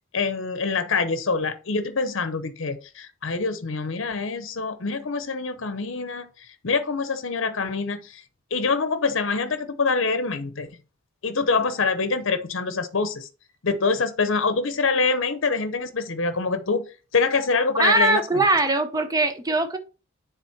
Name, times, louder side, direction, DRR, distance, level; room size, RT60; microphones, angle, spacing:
voice 1, 0.1-8.2 8.5-10.7 11.2-13.3 13.6-16.9 17.1-18.4, left 4 dB, 65° left, 0.8 m, -25 dB
voice 2, 17.8-19.8, right 2 dB, 15° right, 0.7 m, -21 dB
7.3 x 3.9 x 4.3 m
head